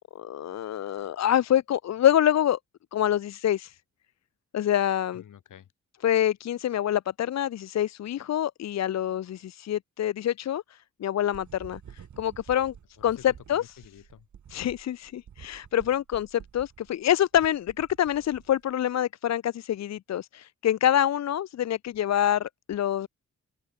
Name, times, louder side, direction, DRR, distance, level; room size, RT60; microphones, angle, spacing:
voice 1, 0.1-2.6 2.9-3.8 4.5-5.2 6.0-12.7 13.0-13.6 14.5-23.1, left 11 dB, 60° left, 0.5 m, -26 dB
voice 2, 5.1-5.7 13.0-14.3 14.5-14.8, left 10 dB, 90° left, 7.6 m, -50 dB
sound 1, 11.3-18.9, right 8 dB, 70° right, 3.0 m, -50 dB
open air
cardioid pair, 75°, 30 cm